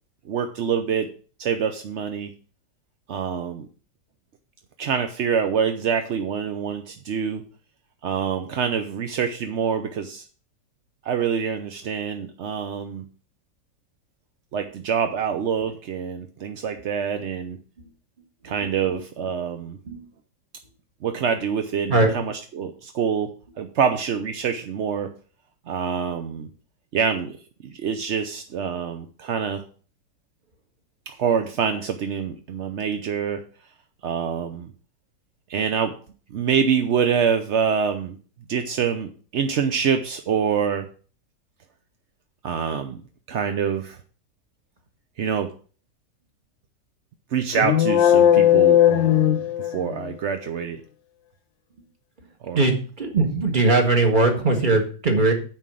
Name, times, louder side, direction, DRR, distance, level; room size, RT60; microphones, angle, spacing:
voice 1, 0.3-1.1 1.4-2.3 3.1-3.7 4.8-7.4 8.0-10.2 11.0-13.1 14.5-17.6 18.4-19.8 21.0-25.1 25.7-26.5 26.9-27.4 27.6-29.6 31.1-33.4 34.0-34.7 35.5-35.9 36.3-38.2 38.5-40.9 42.4-43.0 43.3-44.0 45.2-45.5 47.3-50.8 52.4-52.6, right 7 dB, 60° right, 6 dB, 0.7 m, -26 dB
sound 1, 47.5-50.1, left 11 dB, 80° left, 1.3 m, -17 dB
voice 2, 52.5-55.3, right 3 dB, 25° right, 3 dB, 1.8 m, -20 dB
9.0 x 4.5 x 7.5 m, 0.39 s
omnidirectional pair, 2.0 m